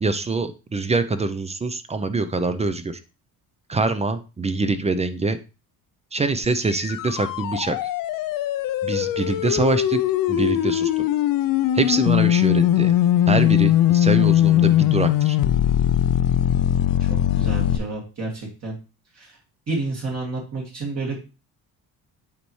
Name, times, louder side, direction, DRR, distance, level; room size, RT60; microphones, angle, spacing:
voice 1, 0.0-3.0 3.7-5.4 6.1-7.8 8.8-10.0 10.3-11.0 11.7-12.9 13.3-15.4, right 3 dB, 20° right, 11 dB, 0.5 m, -24 dB
sound 1, 6.4-17.8, left 12 dB, 65° left, 0.5 m, -20 dB
voice 2, 17.0-18.7 19.1-19.4 19.7-21.2, right 3 dB, 45° right, -1 dB, 2.2 m, -30 dB
8.4 x 4.2 x 3.1 m, 0.31 s
cardioid pair, 110°, 37 cm